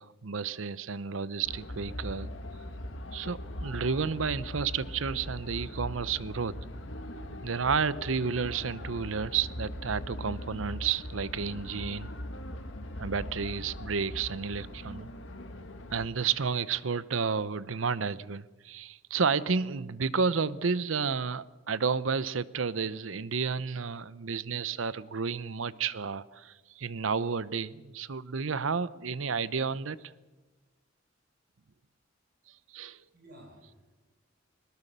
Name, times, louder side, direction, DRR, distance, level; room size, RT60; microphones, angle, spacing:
voice 1, 0.0-2.3 3.1-6.6 7.4-12.1 13.0-15.1 15.9-30.0 32.7-33.0, right 5 dB, 90° right, 17 dB, 0.8 m, -31 dB
sound 1, 1.4-16.1, left 1 dB, 75° left, 1.8 m, -40 dB
voice 2, 32.6-34.1, right 1 dB, 50° right, -1 dB, 6.5 m, -56 dB
22.0 x 20.0 x 6.8 m, 1.2 s
head